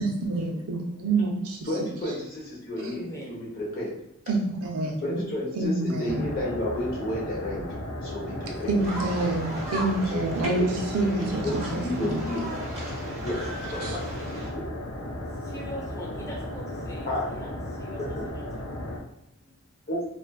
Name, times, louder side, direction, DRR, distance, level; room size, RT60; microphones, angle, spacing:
voice 1, 0.0-1.6 4.3-5.0 5.5-6.2 8.7-12.2 13.8-14.0, right 2 dB, 85° right, 1 dB, 0.5 m, -27 dB
voice 2, 1.6-3.9 5.0-7.7 8.0-8.8 10.1-10.2 10.6-10.7 11.2-12.5 13.2-13.4 13.7-14.0 17.1-17.3 18.1-18.2 19.9-20.0, left 1 dB, 45° left, -5 dB, 0.8 m, -31 dB
voice 3, 2.8-3.5 14.0-14.5 15.4-18.7 19.4-19.5, equal, 15° left, -2 dB, 0.5 m, -42 dB
sound 1, 6.1-19.0, left 1 dB, 75° left, 0.5 m, -35 dB
sound 2, 8.8-14.5, right 1 dB, 30° right, 0.7 m, -37 dB
2.5 x 2.2 x 2.3 m, 0.77 s
head